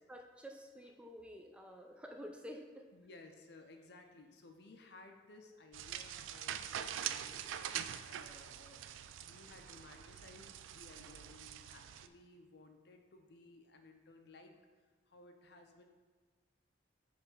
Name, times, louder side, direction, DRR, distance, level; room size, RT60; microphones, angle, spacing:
voice 1, 0.1-2.8, equal, 5° right, 3 dB, 0.3 m, -50 dB
voice 2, 2.9-7.5 8.1-14.6 15.1-15.8, left 3 dB, 60° left, 5 dB, 0.5 m, -58 dB
sound 1, 5.7-12.1, right 10 dB, 90° right, 0.3 m, -44 dB
5.9 x 3.2 x 5.4 m, 1.4 s
head